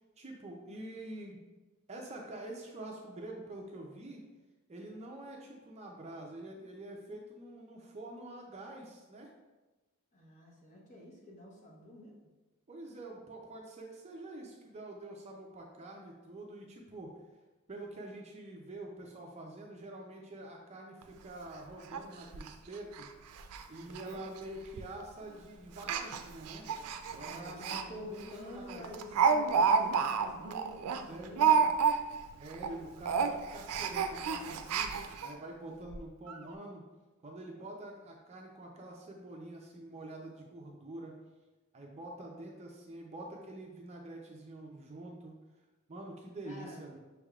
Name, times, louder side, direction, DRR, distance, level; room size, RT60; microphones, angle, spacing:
voice 1, 0.2-1.4 1.9-4.2 4.7-9.3 12.7-17.1 17.7-23.1 23.7-26.6 27.1-29.4 31.1-31.4 32.4-36.8 37.2-41.2 41.7-45.3 45.9-47.0, right 1 dB, 30° right, 0 dB, 0.5 m, -46 dB
voice 2, 10.1-12.2 23.7-24.2 27.1-29.0 29.3-31.7 35.6-35.8 46.4-46.8, left 1 dB, 35° left, -4 dB, 1.1 m, -49 dB
Speech, 21.0-21.1 21.5-21.6 21.9-22.0 22.3-22.5 22.9-23.1 23.4-23.6 23.9-24.0 24.8-25.0 25.8-27.8 28.2-28.3 28.7-32.2 32.5-32.7 33.0-35.3 35.9-36.0 36.3-36.4, right 6 dB, 85° right, 0.4 m, -30 dB
6.3 x 3.4 x 2.3 m, 1.2 s
head